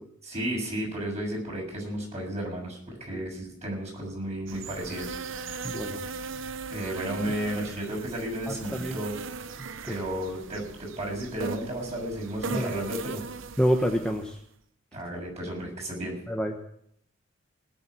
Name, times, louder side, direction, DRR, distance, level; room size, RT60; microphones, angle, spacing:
voice 1, 0.2-5.1 5.4-5.5 6.7-9.1 9.8-13.2 14.9-16.2, right 1 dB, 35° right, -1 dB, 6.8 m, -33 dB
sound 1, 4.5-14.4, right 5 dB, 70° right, 0.8 m, -39 dB
voice 2, 5.6-6.0 8.5-9.0 9.6-9.7 12.5-12.7 13.6-14.4 16.3-16.5, equal, 5° left, 2 dB, 1.0 m, -27 dB
19.5 x 7.2 x 8.5 m, 0.71 s
head